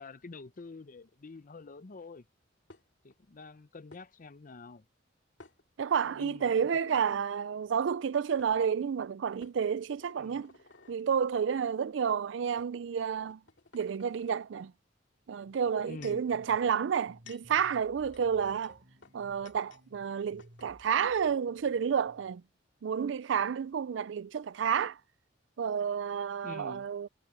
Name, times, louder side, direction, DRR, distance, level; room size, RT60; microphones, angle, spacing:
voice 1, 0.0-2.3 3.0-4.9 6.0-7.0 10.2-10.4 15.8-16.2 26.4-26.9, left 3 dB, 45° left, 0.6 m, -47 dB
sound 1, 2.7-3.2 3.9-4.0 5.4-6.1 6.5-6.7 7.9-8.0 8.4-8.6 9.4-11.0 11.8-11.9 12.6-12.7 13.2-14.4 15.5-16.3 16.9-19.9 20.1-20.2 20.4-20.7, left 4 dB, 70° left, 2.6 m, -57 dB
voice 2, 5.8-10.5 10.9-13.4 13.7-14.7 15.3-18.8 19.1-22.4 22.8-25.0 25.6-27.1, right 7 dB, 70° right, 0.4 m, -30 dB
sound 2, 15.2-22.4, equal, 45° right, 3.3 m, -59 dB
head